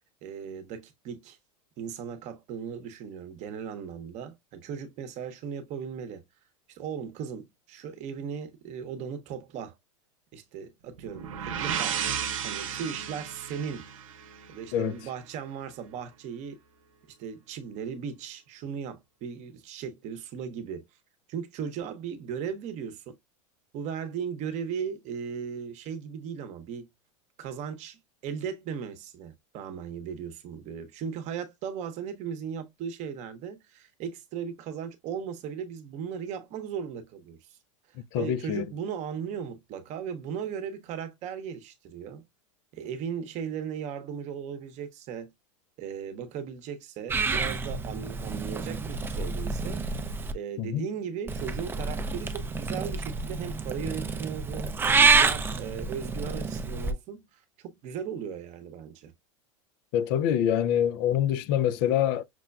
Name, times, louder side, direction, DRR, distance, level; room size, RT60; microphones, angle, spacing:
voice 1, 0.2-1.4 1.8-6.2 6.7-9.8 10.3-12.1 12.4-13.9 14.5-16.6 17.2-20.9 21.3-23.2 23.7-26.9 27.4-37.6 38.1-42.2 42.7-45.3 45.8-49.9 50.3-59.1, right 7 dB, 45° right, 0.8 m, -37 dB
sound 1, 11.0-14.8, right 8 dB, 90° right, 0.7 m, -33 dB
voice 2, 38.1-38.7 50.6-50.9 59.9-62.2, left 10 dB, 55° left, 0.4 m, -25 dB
Purr / Meow, 47.1-50.3 51.3-56.9, right 4 dB, 15° right, 0.4 m, -28 dB
6.0 x 2.2 x 2.3 m
hypercardioid pair, 110°, 16 cm